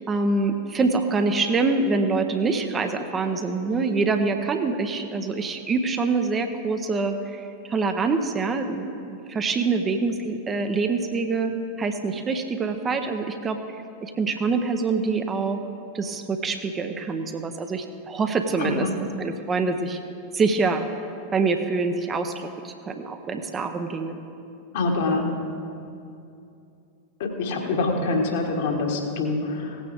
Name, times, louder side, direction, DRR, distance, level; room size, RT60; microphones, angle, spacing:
voice 1, 0.1-11.5 11.8-15.6 15.9-18.9 19.2-20.0 20.3-20.8 21.3-24.2, right 4 dB, 20° right, 6 dB, 0.7 m, -25 dB
voice 2, 18.6-18.9 24.7-25.2 27.2-29.8, left 3 dB, 55° left, 1 dB, 1.7 m, -25 dB
17.0 x 9.2 x 3.6 m, 2.6 s
figure-of-eight pair, 90°, 0 cm